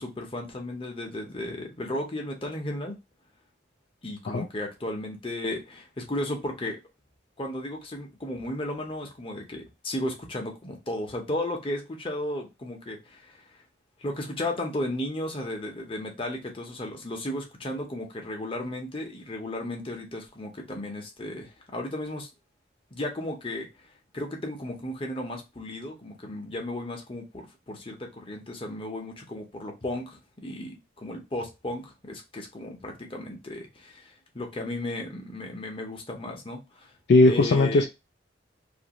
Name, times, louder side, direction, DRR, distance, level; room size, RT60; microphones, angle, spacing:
voice 1, 0.0-3.0 4.0-6.8 7.4-13.5 14.0-22.3 22.9-23.7 24.1-36.9 37.2-37.8, left 1 dB, 30° left, 0.8 m, -34 dB
voice 2, 37.1-37.8, left 2 dB, 60° left, 0.3 m, -18 dB
2.9 x 2.6 x 2.9 m
head